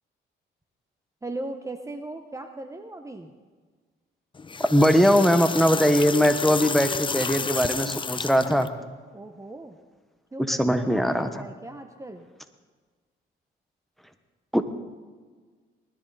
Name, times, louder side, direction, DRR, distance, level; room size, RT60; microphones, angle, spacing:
voice 1, 1.2-3.3 9.1-9.8 10.3-12.3, right 2 dB, 15° right, 7 dB, 0.9 m, -38 dB
sound 1, 4.3-8.7, left 5 dB, 25° left, 0.7 m, -31 dB
voice 2, 4.7-8.7 10.4-11.4 14.5-14.6, equal, ahead, 9 dB, 1.2 m, -21 dB
20.0 x 13.0 x 4.1 m, 1.5 s
cardioid pair, 90°, 20 cm